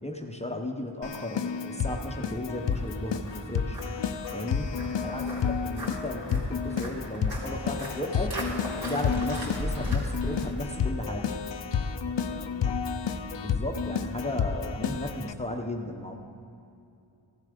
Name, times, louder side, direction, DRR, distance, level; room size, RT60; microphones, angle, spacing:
voice 1, 0.0-3.8 4.3-4.7 5.0-8.4 8.8-11.3 13.3-16.2, left 1 dB, 15° left, 2 dB, 1.0 m, -35 dB
Keyboard (musical), 1.0-15.3, left 6 dB, 70° left, 0.7 m, -31 dB
Walk footsteps, 2.3-10.9, equal, 55° right, 3.4 m, -39 dB
voice 2, 12.0-12.6, equal, 75° right, -4 dB, 3.2 m, -52 dB
15.5 x 12.0 x 5.2 m, 2.7 s
wide cardioid pair, 85°, 46 cm